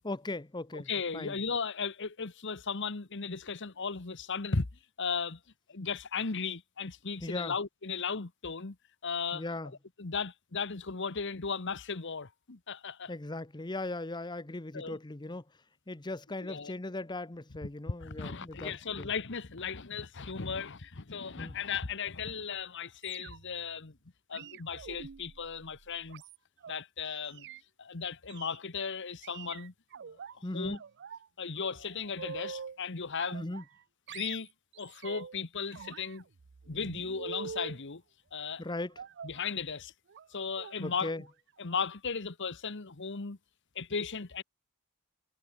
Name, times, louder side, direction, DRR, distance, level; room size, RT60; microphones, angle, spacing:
voice 1, 0.0-1.3 7.2-7.6 9.3-9.7 13.1-15.4 15.9-19.1 21.4-21.6 30.4-30.8 33.3-33.6 38.6-39.0 40.8-41.2, left 2 dB, 20° left, 0.8 m, -38 dB
voice 2, 0.7-4.7 5.0-5.4 5.7-8.8 9.0-9.4 10.0-13.1 14.7-15.0 16.4-16.7 18.0-24.0 24.3-26.2 26.7-27.5 27.8-29.7 30.3-30.8 31.4-33.5 34.1-34.5 34.8-36.2 36.7-38.0 38.3-38.6 39.2-39.9 40.3-41.1 41.6-43.4 43.7-44.4, left 5 dB, 55° left, 1.1 m, -36 dB
sound 1, 23.0-23.6 24.3-26.8 27.3-27.6 28.3-28.6 29.2-30.3 30.7-31.3 31.6-32.8 33.2-33.8 34.1-35.4 35.7-37.8 39.0-39.4 40.1-40.3 40.5-40.8 41.1-41.3 41.6-41.7, right 6 dB, 50° right, 0.5 m, -45 dB
head